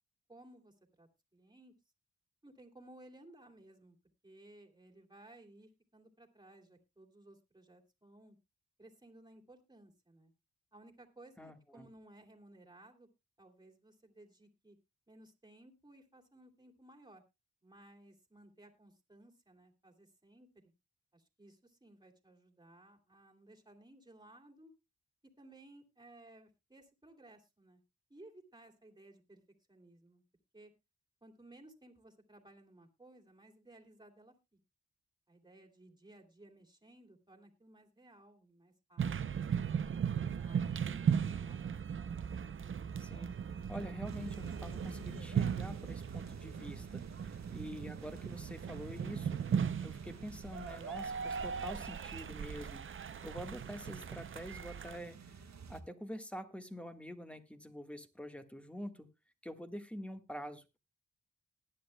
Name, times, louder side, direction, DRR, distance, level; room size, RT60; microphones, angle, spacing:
voice 1, 0.3-1.7 2.4-4.0 4.2-8.4 8.8-10.3 10.7-13.1 13.4-14.8 15.1-17.2 17.6-20.7 21.1-24.7 25.4-27.8 28.1-29.4 29.7-30.2 30.5-30.7 31.2-34.6 35.3-41.8, right 1 dB, 15° right, 1 dB, 2.7 m, -59 dB
voice 2, 11.4-11.9 43.0-43.3 43.7-49.5 49.8-59.1 59.4-60.8, equal, 5° left, 8 dB, 1.5 m, -46 dB
sound 1, 39.0-55.0, right 7 dB, 45° right, 0.6 m, -37 dB
sound 2, 44.0-55.8, right 5 dB, 65° right, 1.5 m, -50 dB
19.5 x 10.5 x 2.2 m, 0.24 s
cardioid pair, 70°, 29 cm